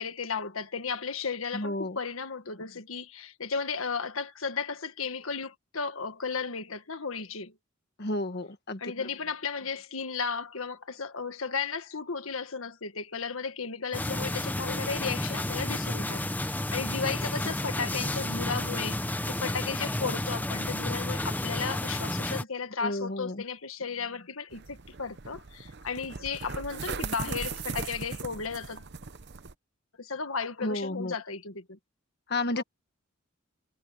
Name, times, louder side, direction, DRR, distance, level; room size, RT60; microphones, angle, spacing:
voice 1, 0.0-7.5 8.8-28.8 30.0-31.8 32.5-32.6, left 5 dB, 80° left, 1.6 m, -34 dB
voice 2, 1.5-2.0 8.0-8.9 22.8-23.4 30.6-31.1 32.3-32.6, left 1 dB, 50° left, 1.7 m, -32 dB
sound 1, 13.9-22.4, left 1 dB, 10° left, 0.8 m, -31 dB
sound 2, 24.5-29.5, right 4 dB, 55° right, 0.9 m, -38 dB
head